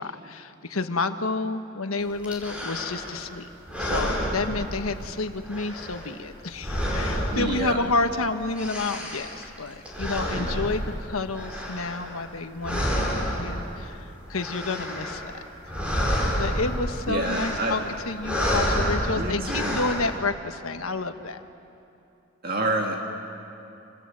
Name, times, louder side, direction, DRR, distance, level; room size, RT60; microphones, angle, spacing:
voice 1, 0.0-3.5 3.8-15.4 16.3-17.8 18.1-21.4, left 3 dB, 85° left, 8 dB, 1.3 m, -30 dB
sound 1, 2.2-3.2 3.6-5.2 5.4-8.1 8.4-12.4 12.6-13.9 14.2-15.3 15.6-20.1, equal, 5° right, 4.8 m, -29 dB
voice 2, 7.3-7.8 10.3-10.6 17.1-17.8 19.1-19.8 22.4-23.0, right 2 dB, 45° right, 1 dB, 2.0 m, -28 dB
27.0 x 26.5 x 7.6 m, 2.7 s
head